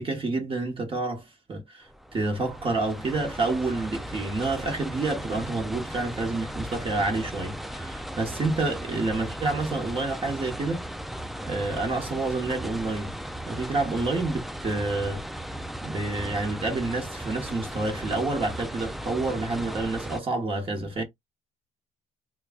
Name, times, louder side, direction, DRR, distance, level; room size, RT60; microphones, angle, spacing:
voice 1, 0.0-10.9 11.4-13.1 13.5-15.2 15.8-21.0, right 3 dB, 30° right, 1.1 m, -29 dB
sound 1, 1.9-20.2, equal, ahead, 0.3 m, -36 dB
2.9 x 2.4 x 3.6 m
cardioid pair, 110°, 17 cm